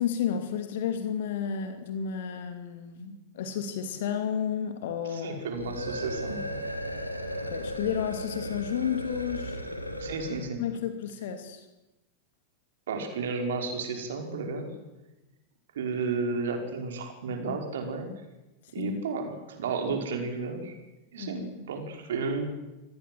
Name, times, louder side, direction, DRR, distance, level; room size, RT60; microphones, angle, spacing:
voice 1, 0.0-5.4 7.5-9.6 10.6-11.6 18.8-19.0 21.2-21.6, left 8 dB, 55° left, 7 dB, 2.7 m, -32 dB
voice 2, 5.1-6.4 10.0-10.6 12.9-14.7 15.8-18.1 18.7-20.8 21.1-22.5, right 4 dB, 60° right, 4 dB, 5.2 m, -32 dB
sound 1, 5.5-10.5, equal, 90° left, 2.8 m, -36 dB
27.0 x 20.0 x 7.9 m, 1.0 s
figure-of-eight pair, 90°, 0 cm